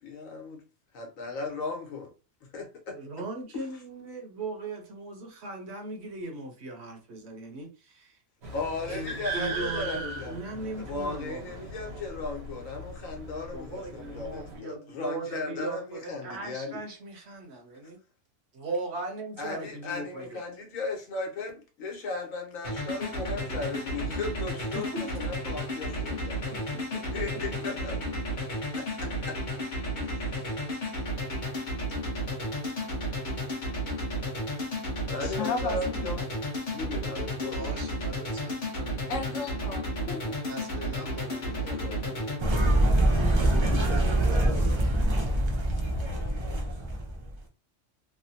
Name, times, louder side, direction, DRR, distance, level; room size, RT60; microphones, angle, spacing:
voice 1, 0.0-0.6 0.9-2.1 2.4-3.0 3.5-3.8 8.5-16.8 19.4-26.7 27.0-28.1 28.7-29.4 30.0-30.5 35.1-36.3 36.7-37.8 41.6-42.6 43.5-45.0, left 3 dB, 90° left, 1.3 m, -37 dB
voice 2, 2.9-8.2 8.9-11.4 13.5-18.0 18.5-20.4 24.7-25.3 26.1-27.0 28.3-28.4 37.5-39.0 40.5-41.7 42.0-42.2 44.0-45.1, right 2 dB, 60° right, 0.9 m, -39 dB
sound 1, 8.4-14.6, right 2 dB, 85° right, 1.4 m, -39 dB
sound 2, 22.6-42.4, equal, 40° left, 0.9 m, -33 dB
voice 3, 35.2-36.0 39.1-40.3, left 4 dB, 70° left, 1.0 m, -34 dB
sound 3, 42.4-47.3, right 1 dB, 40° right, 0.4 m, -24 dB
3.1 x 2.1 x 2.6 m
omnidirectional pair, 1.4 m